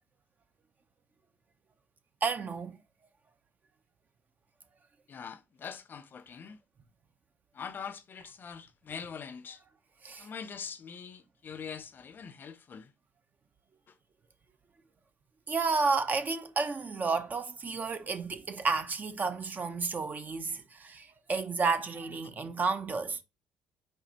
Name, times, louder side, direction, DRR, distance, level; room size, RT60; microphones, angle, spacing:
voice 1, 2.2-2.8 10.0-10.3 15.5-23.2, right 4 dB, 35° right, 0.8 m, -31 dB
voice 2, 5.1-6.6 7.5-9.6 10.2-12.9, left 6 dB, 45° left, 0.6 m, -43 dB
5.2 x 3.4 x 2.9 m
hypercardioid pair, 60°, 5 cm